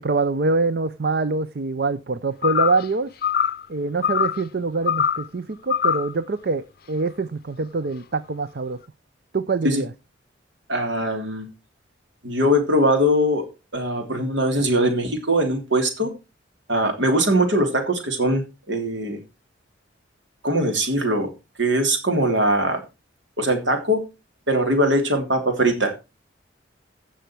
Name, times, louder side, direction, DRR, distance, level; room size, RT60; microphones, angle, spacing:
voice 1, 0.0-3.1 3.7-8.8 9.3-9.9, right 3 dB, 55° right, 14 dB, 0.5 m, -24 dB
sound 1, 2.4-2.9 3.2-3.7 4.0-4.4 4.9-5.3 5.7-6.1, left 8 dB, 50° left, 0.5 m, -22 dB
voice 2, 10.7-11.5 12.2-13.5 13.7-16.1 16.7-19.2 20.4-21.3 21.6-22.8 23.4-24.0 24.5-25.9, right 1 dB, 70° right, 5 dB, 3.2 m, -21 dB
16.0 x 6.3 x 4.5 m, 0.28 s
head